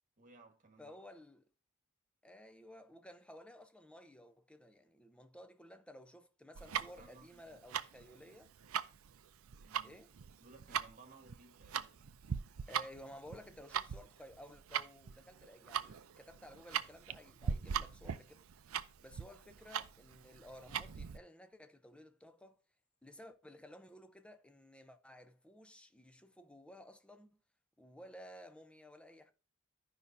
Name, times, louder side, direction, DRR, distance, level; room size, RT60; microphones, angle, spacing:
voice 1, 0.2-1.0 7.0-7.6 9.6-10.0 10.4-12.1 12.8-12.9, right 3 dB, 40° right, 1.5 m, -60 dB
voice 2, 0.8-1.4 2.2-8.5 9.8-10.1 12.7-18.4 19.0-22.6 23.0-27.3 27.8-29.3, equal, 5° left, 0.7 m, -55 dB
Tick-tock, 6.5-21.2, right 7 dB, 75° right, 0.5 m, -41 dB
14.5 x 5.4 x 2.7 m
head